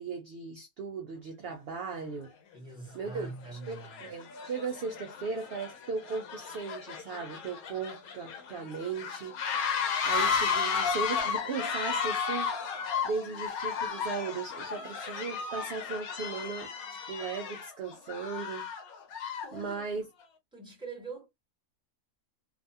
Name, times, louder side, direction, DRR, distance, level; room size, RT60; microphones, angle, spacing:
voice 1, 0.0-2.3 2.9-9.7 10.0-18.7 19.5-20.0, right 5 dB, 70° right, 0.5 m, -37 dB
sound 1, 2.2-2.3 3.1-3.3 3.6-19.6, left 6 dB, 85° left, 1.1 m, -34 dB
voice 2, 2.5-4.0 19.4-20.0 20.5-21.3, right 3 dB, 5° right, 0.9 m, -44 dB
2.7 x 2.2 x 2.6 m
omnidirectional pair, 1.5 m